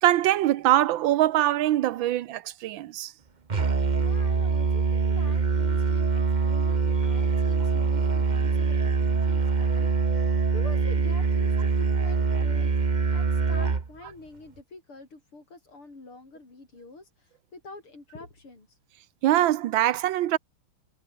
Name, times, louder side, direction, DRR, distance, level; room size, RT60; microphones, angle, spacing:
voice 1, 0.0-3.1 19.2-20.4, right 14 dB, 70° right, 1.5 m, -23 dB
Musical instrument, 3.5-13.9, right 4 dB, 30° right, 1.0 m, -24 dB
voice 2, 3.9-12.7 13.1-18.7, left 3 dB, 90° left, 7.8 m, -46 dB
omnidirectional pair, 2.3 m